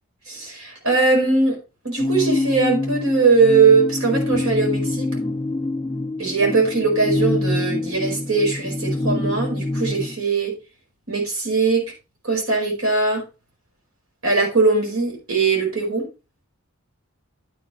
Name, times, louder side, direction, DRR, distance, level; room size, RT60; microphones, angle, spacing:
voice 1, 0.3-1.6 1.8-5.2 6.2-10.5 11.1-11.8 12.2-13.2 14.2-16.1, right 4 dB, 80° right, 0 dB, 4.8 m, -20 dB
sound 1, 2.0-10.1, left 2 dB, 10° left, 2.1 m, -25 dB
10.5 x 8.5 x 3.2 m, 0.30 s
head